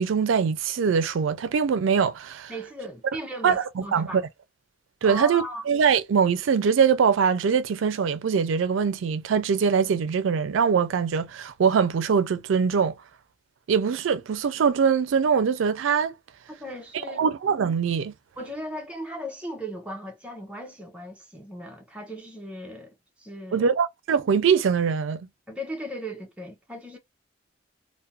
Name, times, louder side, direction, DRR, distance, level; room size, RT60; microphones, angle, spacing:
voice 1, 0.0-2.5 3.4-4.2 5.0-13.0 13.7-16.2 17.1-18.1 23.5-25.2, right 6 dB, 85° right, 0.4 m, -23 dB
voice 2, 2.5-4.2 5.0-5.6 16.5-17.2 18.4-23.7 25.5-27.0, equal, 5° right, 0.6 m, -37 dB
2.4 x 2.1 x 2.6 m
head